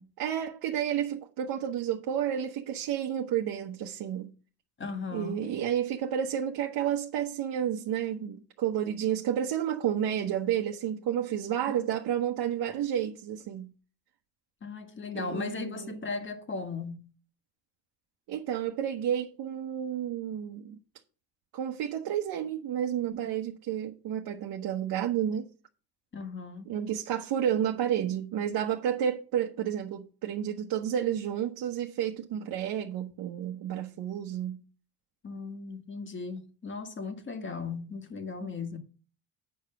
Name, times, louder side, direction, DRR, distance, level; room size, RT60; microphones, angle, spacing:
voice 1, 0.2-4.3 5.1-13.7 15.1-16.0 18.3-20.8 21.5-25.5 26.7-34.6 38.4-38.5, right 9 dB, 60° right, 1.1 m, -31 dB
voice 2, 4.8-5.5 11.8-11.9 14.6-17.0 26.1-26.7 35.2-38.8, left 4 dB, 30° left, 1.7 m, -37 dB
9.0 x 5.0 x 6.8 m
supercardioid pair, 90°, 41 cm